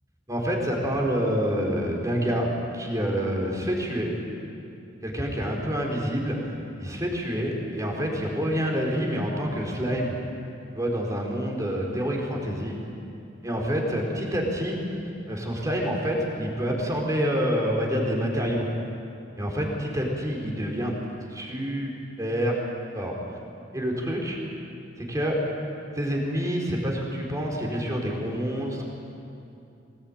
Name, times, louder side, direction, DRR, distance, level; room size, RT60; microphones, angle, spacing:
voice 1, 0.3-4.1 5.0-10.1 10.7-12.8 13.4-14.8 15.3-18.7 19.4-20.9 21.3-21.9 22.2-22.6 22.9-23.1 23.7-24.4 25.0-25.4 25.9-28.8, equal, 20° right, -1 dB, 4.6 m, -27 dB
23.0 x 20.0 x 9.2 m, 2.7 s
head